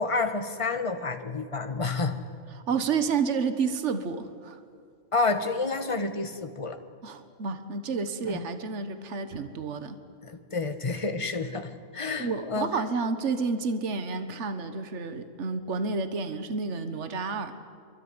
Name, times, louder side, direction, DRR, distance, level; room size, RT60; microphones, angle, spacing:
voice 1, 0.0-2.2 5.1-6.8 8.2-8.4 10.2-12.7, left 3 dB, 25° left, 7 dB, 1.6 m, -29 dB
voice 2, 2.5-4.6 7.0-10.0 12.2-17.5, right 5 dB, 60° right, 9 dB, 1.7 m, -30 dB
25.0 x 24.0 x 9.7 m, 2.2 s
omnidirectional pair, 1.4 m